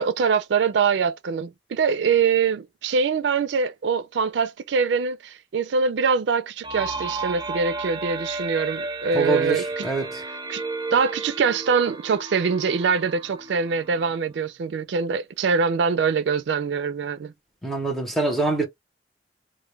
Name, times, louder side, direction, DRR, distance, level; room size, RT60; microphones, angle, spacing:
voice 1, 0.0-9.8 10.5-10.6 10.9-17.3, right 5 dB, 90° right, 0.4 m, -23 dB
sound 1, 6.6-14.3, right 3 dB, 25° right, 0.4 m, -33 dB
voice 2, 9.1-10.2 17.6-18.6, right 3 dB, ahead, 0.8 m, -25 dB
2.2 x 2.2 x 3.1 m
head